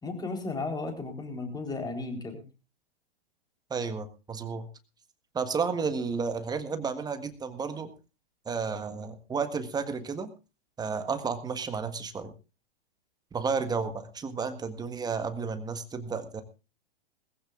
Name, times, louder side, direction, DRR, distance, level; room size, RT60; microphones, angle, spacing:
voice 1, 0.0-2.4, left 3 dB, 15° left, 5 dB, 4.0 m, -34 dB
voice 2, 3.7-4.7 5.3-7.9 8.4-10.3 10.8-12.3 13.3-16.4, right 5 dB, 15° right, 9 dB, 1.6 m, -32 dB
20.5 x 15.0 x 2.5 m, 0.31 s
hypercardioid pair, 110°, 30 cm